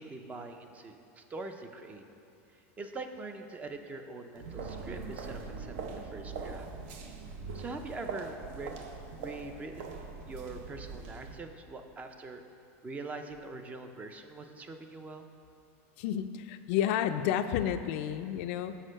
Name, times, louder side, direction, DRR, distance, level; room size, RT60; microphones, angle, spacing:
voice 1, 0.0-2.0 2.5-6.7 7.5-8.7 9.1-12.4 12.8-15.3, right 3 dB, 20° right, 6 dB, 0.5 m, -43 dB
sound 1, 4.4-11.4, right 4 dB, 70° right, 0.7 m, -42 dB
voice 2, 16.0-18.8, left 10 dB, 60° left, 9 dB, 0.4 m, -31 dB
6.4 x 4.5 x 6.3 m, 2.8 s
supercardioid pair, 135°, 8 cm